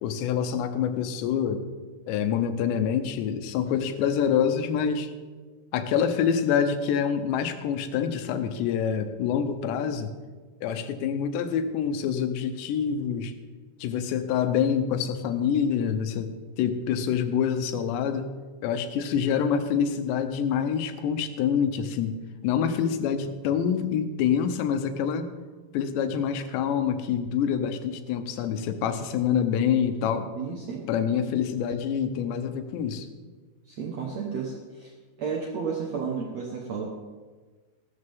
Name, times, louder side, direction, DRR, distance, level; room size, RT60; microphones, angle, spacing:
voice 1, 0.0-1.7 2.1-5.1 5.7-10.1 10.6-13.3 13.8-16.3 16.6-18.3 18.6-22.2 22.4-25.3 25.7-30.3 30.9-33.1, left 8 dB, 85° left, 8 dB, 3.1 m, -26 dB
voice 2, 30.3-30.9 33.7-34.9 35.2-36.8, right 5 dB, 80° right, 0 dB, 1.5 m, -32 dB
16.0 x 13.5 x 3.6 m, 1.4 s
omnidirectional pair, 5.0 m